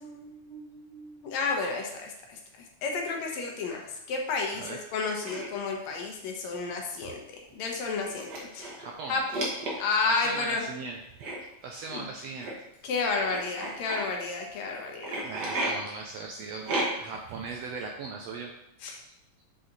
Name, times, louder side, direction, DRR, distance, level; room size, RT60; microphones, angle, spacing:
voice 1, 0.0-8.7 9.1-9.2 9.8-10.7 11.9-12.0 12.8-15.3 18.8-19.0, left 4 dB, 70° left, 1 dB, 2.0 m, -32 dB
sound 1, 5.2-5.5 6.6-6.8 7.1-7.2 8.0-8.8 9.3-10.1 11.2-11.4 12.4-12.5 13.2-14.0 15.0-15.7 16.6-17.2, right 2 dB, 50° right, 1.3 m, -32 dB
voice 2, 8.8-9.2 10.0-11.0 11.6-12.5 15.2-18.5 19.1-19.2, right 4 dB, 80° right, 1 dB, 1.5 m, -39 dB
7.8 x 4.0 x 3.9 m, 0.87 s
omnidirectional pair, 3.5 m